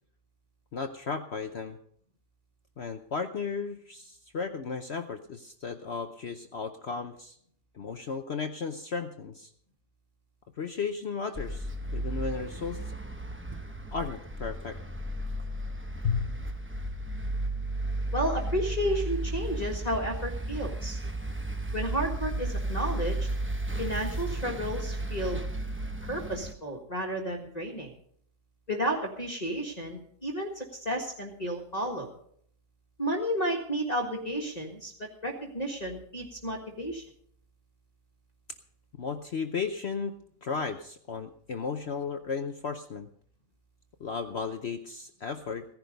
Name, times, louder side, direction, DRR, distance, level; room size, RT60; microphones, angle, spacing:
voice 1, 0.7-1.8 2.8-7.4 7.7-9.5 10.6-12.9 13.9-14.8 16.0-16.3 39.0-43.1 44.0-45.7, left 5 dB, 50° left, 8 dB, 0.8 m, -34 dB
sound 1, 11.3-26.5, right 1 dB, 10° right, 0.7 m, -34 dB
voice 2, 18.1-21.0 21.7-23.3 23.8-25.4 26.1-27.9 28.7-32.1 33.0-34.9 35.2-37.0, equal, 25° left, -1 dB, 1.7 m, -32 dB
16.5 x 10.5 x 5.2 m, 0.64 s
omnidirectional pair, 1.8 m